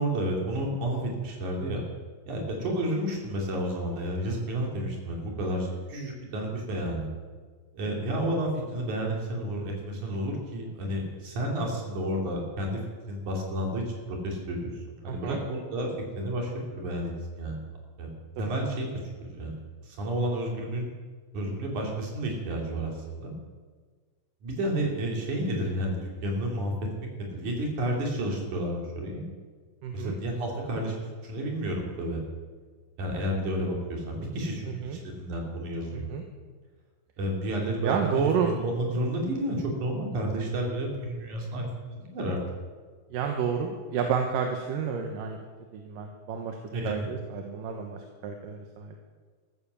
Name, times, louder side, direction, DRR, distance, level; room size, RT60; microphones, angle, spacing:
voice 1, 0.0-1.8 2.3-7.1 7.7-12.8 13.1-15.9 16.2-17.6 18.0-18.1 18.4-18.9 19.3-19.6 19.8-20.9 21.3-23.3 24.4-26.9 27.2-29.2 29.9-31.0 31.2-32.2 33.0-36.1 37.2-42.4 46.7-47.1, right 1 dB, 55° right, 0 dB, 4.5 m, -31 dB
voice 2, 15.1-15.4 18.4-18.6 29.8-30.2 34.7-35.0 35.9-36.2 37.8-38.5 43.1-45.4 45.7-48.9, right 7 dB, 75° right, 4 dB, 2.8 m, -30 dB
14.5 x 14.0 x 7.0 m, 1.5 s
omnidirectional pair, 4.2 m